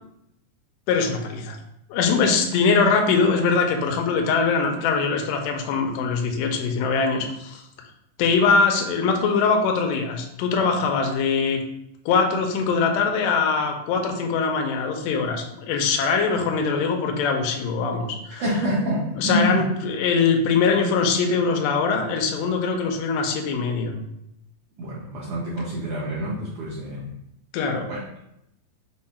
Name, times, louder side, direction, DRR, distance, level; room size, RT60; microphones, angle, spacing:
voice 1, 0.9-1.6 1.9-7.6 8.2-11.6 12.1-18.4 19.2-23.9 27.5-27.9, left 5 dB, 80° left, 3 dB, 2.2 m, -22 dB
voice 2, 18.4-19.6 24.8-27.1 27.9-28.2, equal, 85° right, -6 dB, 1.4 m, -26 dB
5.3 x 2.1 x 4.2 m, 0.81 s
omnidirectional pair, 3.9 m